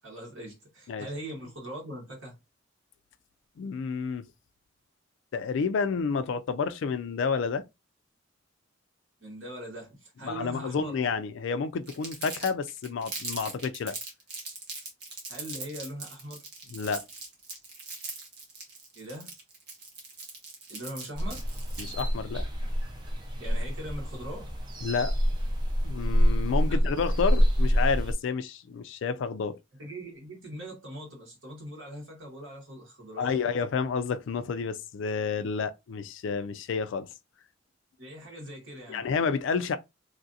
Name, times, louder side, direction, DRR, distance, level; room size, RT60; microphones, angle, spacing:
voice 1, 0.0-2.4 9.2-11.0 15.3-16.5 18.9-19.3 20.7-21.5 23.4-24.5 26.7-26.8 29.8-33.4 38.0-39.0, right 1 dB, 75° right, 1.6 m, -41 dB
voice 2, 3.6-4.3 5.3-7.6 10.2-14.0 16.7-17.0 21.8-22.5 24.8-25.2 25.8-29.6 33.2-37.1 38.9-39.8, left 5 dB, 65° left, 0.3 m, -30 dB
Crumpling crinkling, 11.9-22.1, right 3 dB, 50° right, 1.2 m, -40 dB
sound 1, 21.2-28.1, equal, 20° right, 0.4 m, -26 dB
3.2 x 2.5 x 2.6 m
head